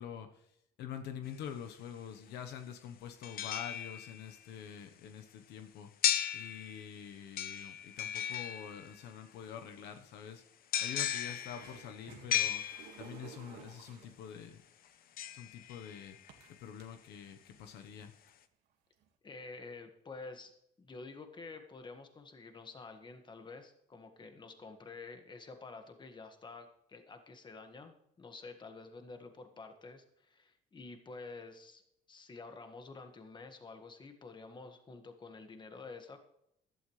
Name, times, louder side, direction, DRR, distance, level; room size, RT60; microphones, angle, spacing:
voice 1, 0.0-5.9 6.3-10.4 10.8-12.6 13.0-14.6 15.3-16.2 16.6-18.1, left 8 dB, 85° left, 7 dB, 1.1 m, -46 dB
sound 1, 1.3-1.4 3.2-4.4 6.0-7.0 7.4-9.1 10.7-13.3 15.2-16.3 16.8-16.9, left 10 dB, 60° left, 0.8 m, -36 dB
sound 2, 11.3-14.3 15.3-15.4 16.3-16.9 17.4-17.5 17.9-18.3 19.0-19.1, right 8 dB, 85° right, 1.9 m, -54 dB
voice 2, 19.2-20.5 20.8-31.8 32.1-36.2, left 3 dB, 25° left, 6 dB, 1.7 m, -49 dB
15.5 x 12.0 x 3.3 m, 0.76 s
cardioid pair, 110°, 17 cm